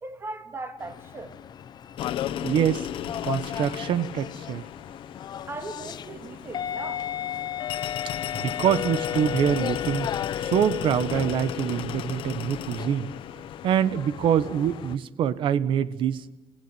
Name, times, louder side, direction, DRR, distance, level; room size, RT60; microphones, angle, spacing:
voice 1, 0.0-1.3 5.5-7.0, right 3 dB, 25° right, 2.4 m, -38 dB
sound 1, 0.8-15.0, left 9 dB, 50° left, 0.8 m, -35 dB
sound 2, 2.0-15.0, left 11 dB, 70° left, 1.3 m, -36 dB
voice 2, 2.4-2.9 3.2-4.6 8.3-10.1 10.4-13.1 13.6-16.2, right 9 dB, 65° right, 1.3 m, -25 dB
29.5 x 16.5 x 9.2 m
cardioid pair, 115°, 9 cm